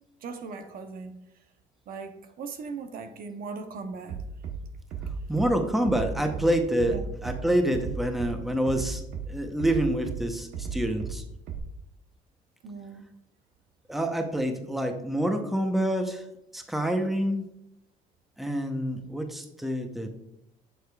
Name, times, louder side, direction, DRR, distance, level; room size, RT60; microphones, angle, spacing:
voice 1, 0.2-1.1 1.9-4.2 6.2-6.3 6.9-7.0 12.6-13.1, right 4 dB, 60° right, 7 dB, 0.8 m, -39 dB
Bass drum, 4.1-4.6 4.9-5.5 5.8-6.5 6.8-7.4 7.7-8.3 8.7-9.3 9.6-10.2 10.5-11.1 11.5-11.6, right 8 dB, 85° right, 0.9 m, -34 dB
voice 2, 5.3-11.2 13.9-16.2 16.5-17.4 18.4-20.1, right 1 dB, ahead, 5 dB, 0.8 m, -27 dB
7.8 x 6.5 x 2.3 m, 0.81 s
cardioid pair, 110°, 17 cm